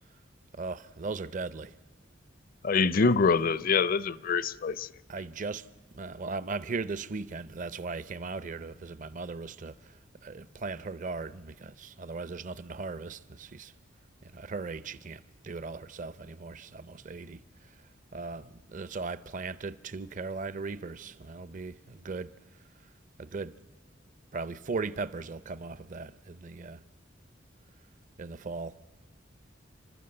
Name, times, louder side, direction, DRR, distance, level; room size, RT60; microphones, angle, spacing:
voice 1, 0.5-1.7 5.1-5.7 5.9-9.8 10.2-13.7 14.2-17.4 18.1-22.3 23.2-23.5 24.3-26.8 28.2-28.7, right 4 dB, 45° right, 0.6 m, -38 dB
voice 2, 2.6-4.9, left 4 dB, 50° left, 0.5 m, -25 dB
30.0 x 12.5 x 7.8 m
head